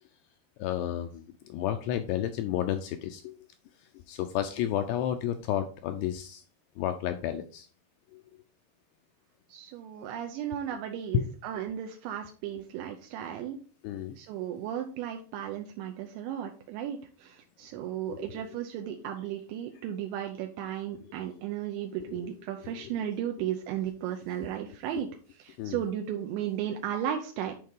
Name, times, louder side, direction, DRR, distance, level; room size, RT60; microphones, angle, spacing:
voice 1, 0.6-1.2 1.5-3.3 4.1-6.4 6.8-7.7 8.1-8.2 11.1-11.2 13.8-14.2 18.1-18.4 21.1-21.2 22.1-22.3 22.8-22.9 25.6-25.8, left 11 dB, 80° left, 7 dB, 2.5 m, -31 dB
voice 2, 9.5-13.6 14.2-25.1 25.4-27.6, right 10 dB, 80° right, 3 dB, 3.0 m, -35 dB
9.5 x 4.7 x 3.7 m, 0.39 s
omnidirectional pair, 5.3 m